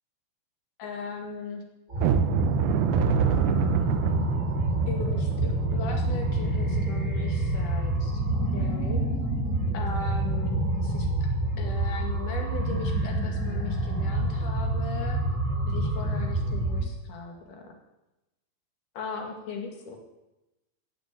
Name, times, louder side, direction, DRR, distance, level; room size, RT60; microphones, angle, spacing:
voice 1, 0.8-1.6 4.9-8.2 8.5-9.0 9.7-11.1 11.6-15.2 15.7-17.7 19.0-20.0, left 3 dB, 65° left, 2 dB, 3.5 m, -38 dB
sound 1, 1.9-16.9, right 1 dB, 25° right, 2.4 m, -27 dB
sound 2, 2.0-8.7 9.1-9.2 9.7-9.8 10.3-10.5, right 8 dB, 70° right, 2.2 m, -29 dB
14.5 x 6.8 x 9.1 m, 0.99 s
omnidirectional pair, 4.1 m